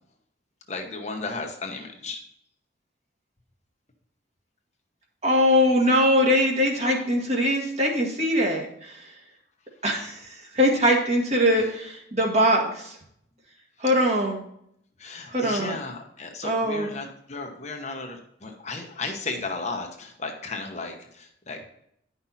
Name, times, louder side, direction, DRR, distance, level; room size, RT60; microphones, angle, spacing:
voice 1, 0.7-2.2 11.5-11.7 15.0-21.7, left 3 dB, 35° left, 3 dB, 1.1 m, -35 dB
voice 2, 5.2-9.1 9.8-13.0 13.8-14.4 15.3-15.8 16.4-16.9, equal, 35° right, 0 dB, 1.9 m, -22 dB
10.5 x 5.8 x 4.2 m, 0.71 s
head